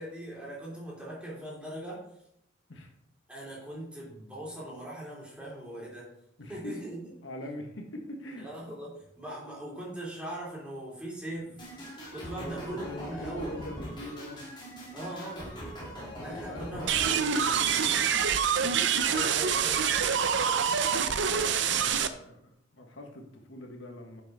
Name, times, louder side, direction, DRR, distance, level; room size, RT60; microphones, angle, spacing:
voice 1, 0.0-2.2 3.3-6.1 6.5-7.0 8.4-11.6 12.1-13.6 14.9-15.6 16.1-17.9 19.0-21.2, right 1 dB, 5° right, -6 dB, 3.3 m, -41 dB
voice 2, 6.4-6.8 7.2-8.5 12.4-14.7 16.2-19.0 20.9-24.2, left 1 dB, 75° left, 2 dB, 1.4 m, -43 dB
sound 1, 11.6-17.9, equal, 25° left, 2.6 m, -42 dB
sound 2, 16.9-22.1, right 7 dB, 65° right, 0.6 m, -26 dB
10.0 x 5.8 x 4.1 m, 0.74 s
head